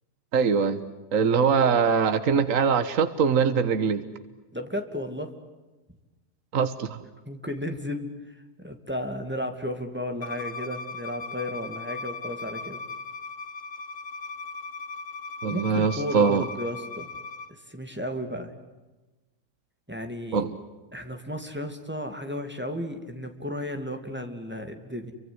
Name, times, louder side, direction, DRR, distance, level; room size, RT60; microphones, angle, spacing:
voice 1, 0.3-0.8 1.1-4.0 6.5-7.0 15.4-16.4 20.3-20.5, right 6 dB, 55° right, 10 dB, 1.7 m, -22 dB
voice 2, 4.5-5.3 7.3-12.8 15.5-17.1 17.5-18.5 19.9-20.4 20.9-25.1, equal, 5° right, 5 dB, 2.7 m, -34 dB
Bowed string instrument, 10.2-17.5, left 4 dB, 55° left, 1.5 m, -38 dB
30.0 x 25.0 x 8.0 m, 1.1 s
omnidirectional pair, 1.7 m